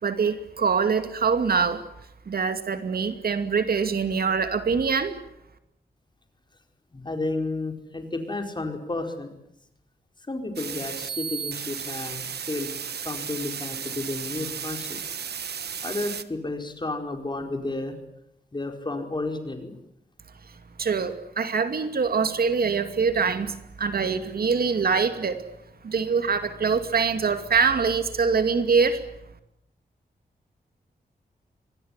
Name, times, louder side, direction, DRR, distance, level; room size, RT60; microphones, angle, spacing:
voice 1, 0.0-1.8 2.3-5.1 20.8-25.4 25.8-29.0, right 5 dB, 70° right, 9 dB, 2.4 m, -24 dB
voice 2, 6.9-9.3 10.3-12.7 13.0-15.0 15.8-18.0 18.5-19.7, left 2 dB, 25° left, 5 dB, 4.7 m, -32 dB
sound 1, 10.6-16.2, right 7 dB, 85° right, 1.4 m, -34 dB
25.5 x 19.5 x 9.7 m, 0.80 s
wide cardioid pair, 105°, 16 cm